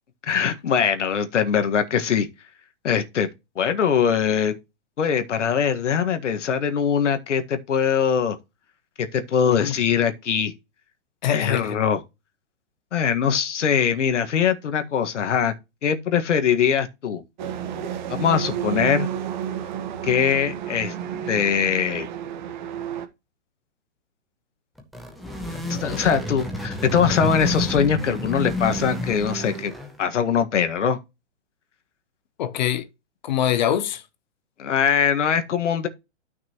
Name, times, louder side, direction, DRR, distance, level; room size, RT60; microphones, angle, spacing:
voice 1, 0.3-2.3 2.8-3.3 3.6-4.6 5.0-8.4 9.0-10.5 11.3-12.0 12.9-15.5 15.8-17.2 18.1-19.1 20.0-20.9 21.3-22.1 25.7-29.7 30.0-31.0 34.6-35.9, left 7 dB, 80° left, 1.8 m, -22 dB
voice 2, 9.4-9.7 11.2-11.8 32.4-32.9 33.2-34.0, left 10 dB, 40° left, 1.0 m, -24 dB
sound 1, 17.4-23.1, right 9 dB, 40° right, 1.4 m, -31 dB
sound 2, 24.8-30.1, left 1 dB, ahead, 0.6 m, -30 dB
12.5 x 6.0 x 3.0 m
hypercardioid pair, 165°, 35 cm